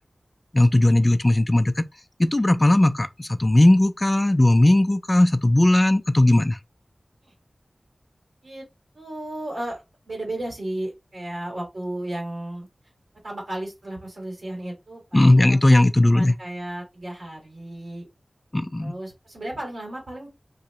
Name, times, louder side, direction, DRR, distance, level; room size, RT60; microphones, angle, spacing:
voice 1, 0.5-1.8 2.2-6.6 15.1-16.3 18.5-18.9, left 1 dB, 30° left, 0.4 m, -17 dB
voice 2, 8.9-12.7 13.2-15.6 16.0-18.1 18.8-20.3, right 1 dB, 80° right, 1.8 m, -34 dB
3.0 x 2.8 x 2.9 m
wide cardioid pair, 45°, 0 cm